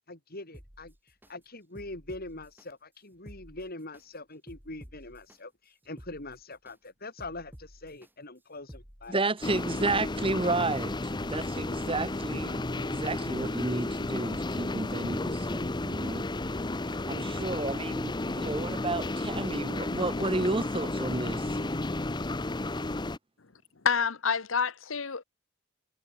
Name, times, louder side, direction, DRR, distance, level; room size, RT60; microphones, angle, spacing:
voice 1, 0.1-9.2, left 2 dB, 50° left, 5.6 m, -43 dB
sound 1, 0.5-1.3 1.8-2.7 3.1-4.0 4.5-5.4 5.8-6.8 7.2-8.1 8.6-9.5 9.9-10.8 11.3-11.4, equal, 10° right, 5.4 m, -51 dB
voice 2, 9.1-16.2 17.1-21.7, right 2 dB, 25° right, 1.4 m, -32 dB
sound 2, 9.4-23.2, left 2 dB, 20° left, 0.8 m, -32 dB
voice 3, 23.8-25.2, left 6 dB, 80° left, 1.2 m, -28 dB
head